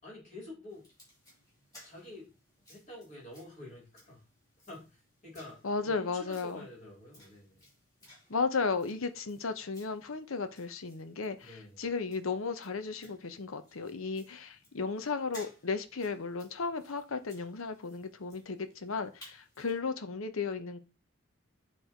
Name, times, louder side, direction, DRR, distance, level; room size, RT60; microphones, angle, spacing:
voice 1, 0.0-0.9 1.8-2.3 2.7-4.2 4.7-7.6 11.4-11.8, left 1 dB, 35° left, -2 dB, 3.8 m, -48 dB
sound 1, 0.7-19.8, equal, 15° left, 4.6 m, -60 dB
voice 2, 5.6-6.7 8.3-20.8, left 4 dB, 85° left, 10 dB, 0.8 m, -35 dB
9.0 x 3.3 x 4.5 m, 0.31 s
head